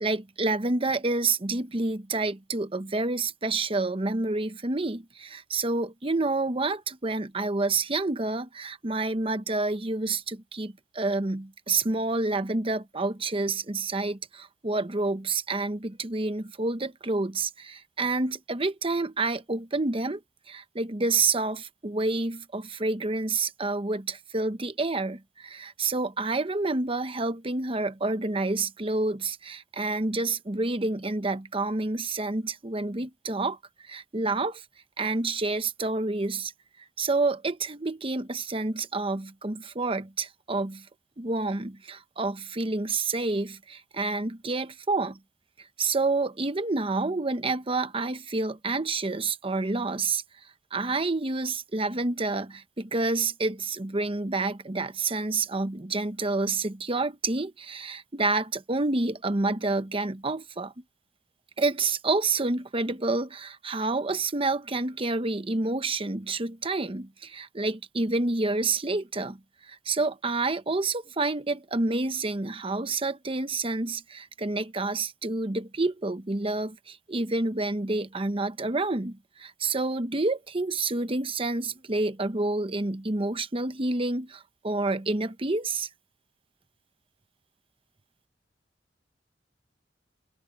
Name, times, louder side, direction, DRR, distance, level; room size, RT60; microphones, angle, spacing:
voice 1, 0.0-20.2 20.5-33.6 33.8-34.6 35.0-36.5 37.0-40.9 41.2-45.2 45.6-50.2 50.7-60.7 61.6-85.9, right 3 dB, 30° right, 1.0 m, -28 dB
head